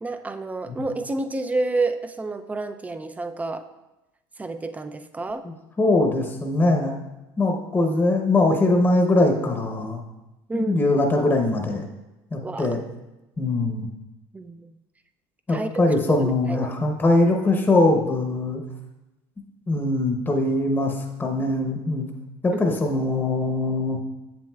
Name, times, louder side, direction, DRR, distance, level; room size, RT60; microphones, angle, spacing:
voice 1, 0.0-3.7 4.4-5.4 10.5-10.8 12.4-12.8 14.3-14.7 15.5-15.8 16.1-16.7 22.5-22.6, right 2 dB, 15° right, 9 dB, 0.4 m, -29 dB
voice 2, 5.4-7.0 7.4-10.0 10.5-11.8 12.3-12.8 13.4-13.9 15.5-18.6 19.7-22.1 22.4-24.0, left 2 dB, 20° left, 2 dB, 0.8 m, -22 dB
7.4 x 7.4 x 2.3 m, 1.0 s
supercardioid pair, 105°, 11 cm